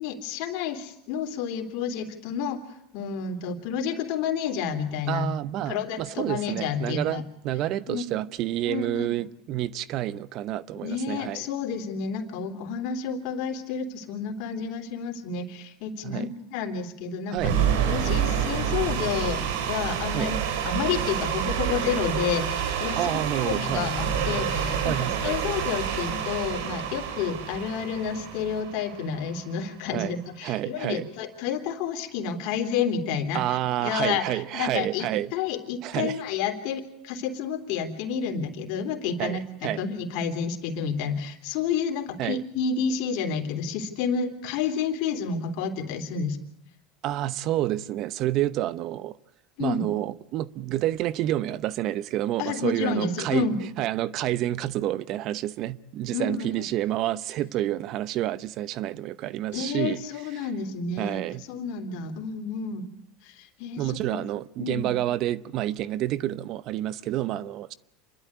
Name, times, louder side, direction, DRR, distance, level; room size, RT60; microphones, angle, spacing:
voice 1, 0.0-2.6 2.9-5.3 5.7-7.2 7.9-8.0 8.6-9.2 10.7-17.4 17.9-20.4 20.6-46.4 49.6-49.8 52.4-53.6 56.1-56.5 59.5-61.2 61.5-62.9 63.2-64.2 64.6-64.9, left 6 dB, 65° left, 3.1 m, -30 dB
voice 2, 5.1-11.5 16.0-16.3 17.3-17.6 20.1-20.3 23.0-23.9 24.8-25.4 29.9-30.1 30.4-31.1 33.3-35.3 35.8-36.2 39.2-39.8 42.2-42.4 47.0-49.2 49.6-60.0 60.3-60.5 61.0-61.4 63.8-67.7, right 13 dB, 55° right, 0.8 m, -29 dB
sound 1, 17.4-29.5, right 8 dB, 80° right, 3.2 m, -28 dB
sound 2, 19.0-28.6, left 5 dB, 25° left, 1.2 m, -42 dB
27.5 x 12.0 x 9.6 m
supercardioid pair, 115°, 0 cm